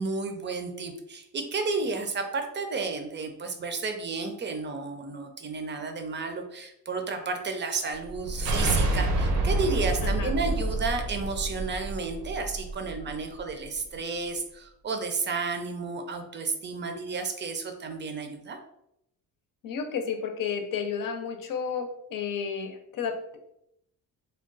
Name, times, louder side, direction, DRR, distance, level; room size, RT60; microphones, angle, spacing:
voice 1, 0.0-18.6, right 4 dB, 30° right, 5 dB, 0.5 m, -32 dB
sound 1, 8.0-13.1, right 2 dB, 80° right, 0.8 m, -28 dB
voice 2, 10.0-10.3 19.6-23.4, left 6 dB, 70° left, 5 dB, 0.7 m, -32 dB
3.5 x 2.3 x 3.8 m, 0.78 s
cardioid pair, 150°, 35 cm